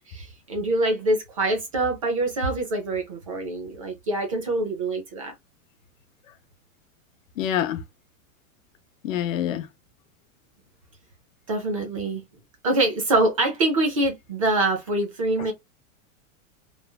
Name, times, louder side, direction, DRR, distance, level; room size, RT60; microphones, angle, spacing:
voice 1, 0.1-5.3 11.5-12.2 12.6-15.5, right 2 dB, 25° right, 0.4 m, -25 dB
voice 2, 7.4-7.8 9.0-9.7, left 10 dB, 70° left, 0.7 m, -26 dB
3.1 x 2.3 x 2.2 m
supercardioid pair, 175°, 41 cm